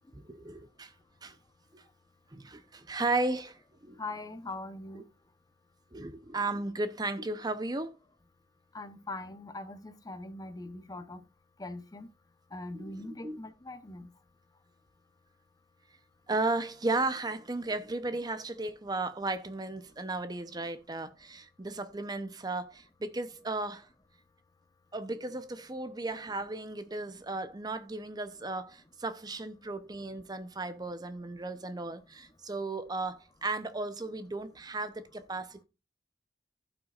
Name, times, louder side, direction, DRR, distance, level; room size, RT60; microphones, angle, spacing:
voice 1, 0.1-0.9 1.2-1.4 1.7-1.8 2.3-4.0 4.9-5.0 5.9-7.9 12.7-13.4 16.3-23.9 24.9-35.6, right 2 dB, 20° right, 0.7 m, -35 dB
voice 2, 4.0-5.0 8.7-11.2 11.6-12.1 12.5-14.0, left 2 dB, 20° left, 0.8 m, -41 dB
15.5 x 5.9 x 2.4 m
head